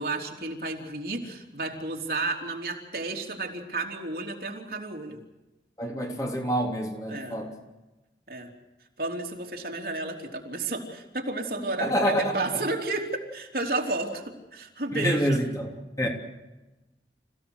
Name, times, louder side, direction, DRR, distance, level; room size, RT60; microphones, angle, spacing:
voice 1, 0.0-5.2 7.1-7.4 8.3-8.5 9.0-15.4, right 2 dB, 60° right, 1 dB, 3.5 m, -32 dB
voice 2, 5.8-7.6 11.8-12.6 14.9-16.1, equal, 20° left, 1 dB, 3.3 m, -27 dB
27.5 x 16.5 x 8.1 m, 1.0 s
head